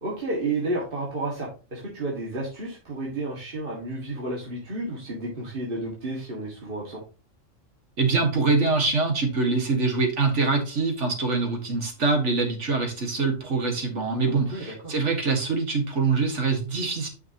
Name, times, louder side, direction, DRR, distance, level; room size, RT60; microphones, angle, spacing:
voice 1, 0.0-7.0 14.3-14.9, right 2 dB, 45° right, -4 dB, 2.0 m, -31 dB
voice 2, 8.0-17.1, right 3 dB, 70° right, 5 dB, 1.9 m, -24 dB
9.2 x 5.8 x 2.8 m, 0.34 s
omnidirectional pair, 1.3 m